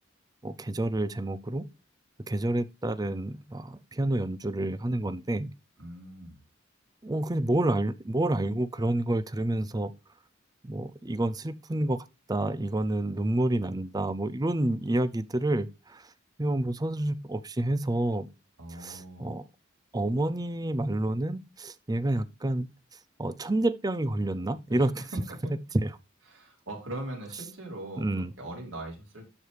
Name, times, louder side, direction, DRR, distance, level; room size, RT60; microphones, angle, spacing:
voice 1, 0.4-1.6 2.3-5.5 7.0-9.9 10.6-12.0 12.3-16.1 16.4-18.3 18.8-19.4 19.9-22.7 23.2-25.1 25.8-25.9 28.0-28.3, right 1 dB, 20° right, 0.5 m, -29 dB
voice 2, 5.8-6.4 18.6-19.3 24.7-24.9 25.1-25.5 26.3-29.3, right 1 dB, 80° right, 4.2 m, -40 dB
12.5 x 4.7 x 3.4 m
head